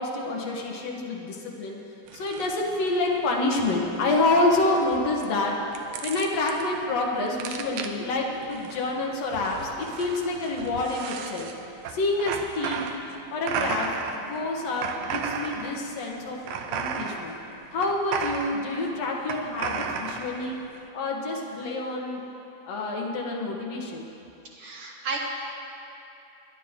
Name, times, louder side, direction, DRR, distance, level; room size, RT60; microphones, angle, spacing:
voice 1, 0.0-1.8 2.1-5.6 6.0-11.5 11.9-12.9 13.3-17.4 17.7-20.6 20.9-22.2 22.7-24.1, left 2 dB, 55° left, -1 dB, 2.3 m, -27 dB
sound 1, 2.1-20.8, right 6 dB, 80° right, 2.4 m, -35 dB
voice 2, 24.5-25.2, right 4 dB, 55° right, -2 dB, 1.7 m, -33 dB
21.5 x 10.5 x 3.7 m, 2.9 s
omnidirectional pair, 4.1 m